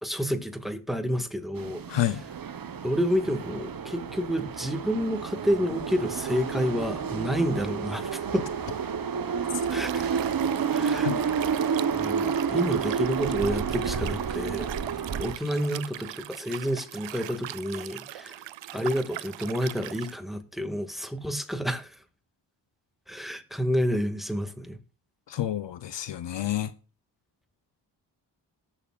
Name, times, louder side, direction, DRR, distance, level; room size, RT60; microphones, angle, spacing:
voice 1, 0.0-2.2 2.8-8.5 9.7-10.1 10.7-11.1 11.4-11.5 11.9-14.7 15.2-18.4 18.7-22.0 23.1-24.8, equal, ahead, 1.9 m, -29 dB
sound 1, 1.6-15.4, right 6 dB, 50° right, 1.0 m, -30 dB
voice 2, 1.9-2.2 11.0-11.2 25.3-26.7, left 12 dB, 70° left, 0.7 m, -29 dB
Liquid, 9.6-20.1, right 14 dB, 80° right, 0.6 m, -41 dB
18.5 x 7.1 x 2.4 m
cardioid pair, 45°, 44 cm